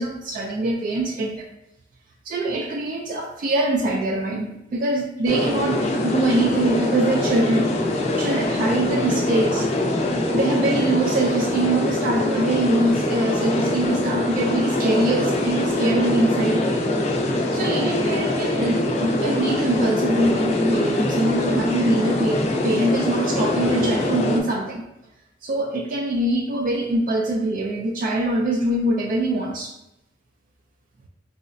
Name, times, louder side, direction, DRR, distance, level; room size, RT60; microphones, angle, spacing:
voice 1, 0.0-1.5 2.3-9.7 10.3-16.7 17.5-24.8 25.4-29.7, right 1 dB, 50° right, 2 dB, 0.3 m, -23 dB
sound 1, 5.3-24.4, left 1 dB, 35° left, 0.4 m, -23 dB
4.6 x 2.0 x 2.5 m, 0.88 s
head